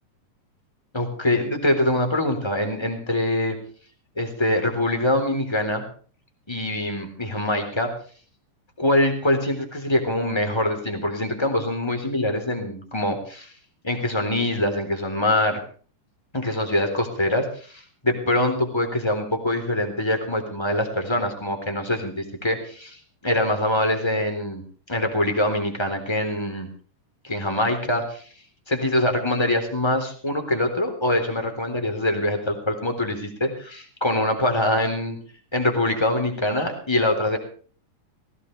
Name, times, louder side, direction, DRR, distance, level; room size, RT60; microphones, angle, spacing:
voice 1, 0.9-3.6 4.2-5.8 6.5-7.9 8.8-13.5 13.8-15.6 16.3-23.0 23.2-24.6 24.9-26.7 27.2-28.2 28.7-35.2 35.5-37.4, left 1 dB, 10° left, 5 dB, 3.5 m, -24 dB
20.0 x 17.0 x 3.3 m, 0.43 s
omnidirectional pair, 3.8 m